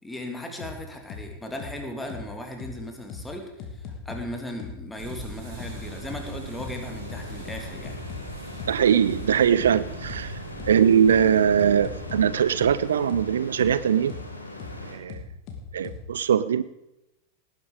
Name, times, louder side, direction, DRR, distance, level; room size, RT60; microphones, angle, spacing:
voice 1, 0.0-8.0, left 1 dB, 10° left, 3 dB, 2.9 m, -37 dB
sound 1, 0.6-0.7 1.1-1.2 1.6-1.7 2.1-2.2 2.6-2.7 3.1-3.2 3.6-4.2 4.6-4.7 5.1-5.2 5.6-5.7 6.1-6.2 6.6-6.7 7.1-8.2 8.6-8.7 9.1-9.2 9.6-9.7 10.1-10.2 10.6-10.7 11.1-11.2 11.6-12.2 12.6-12.7 13.1-13.2 13.6-13.7 14.1-14.2 14.6-14.7 15.1-16.0, left 7 dB, 40° left, 2.8 m, -38 dB
sound 2, 5.0-12.9, right 3 dB, 45° right, 5.9 m, -41 dB
sound 3, 5.4-15.0, left 1 dB, 85° left, 2.4 m, -41 dB
voice 2, 8.7-10.4 10.7-14.1 14.8-15.2 15.7-16.6, right 8 dB, 65° right, 16 dB, 0.5 m, -21 dB
18.5 x 10.5 x 5.2 m, 0.92 s
figure-of-eight pair, 90°, 0 cm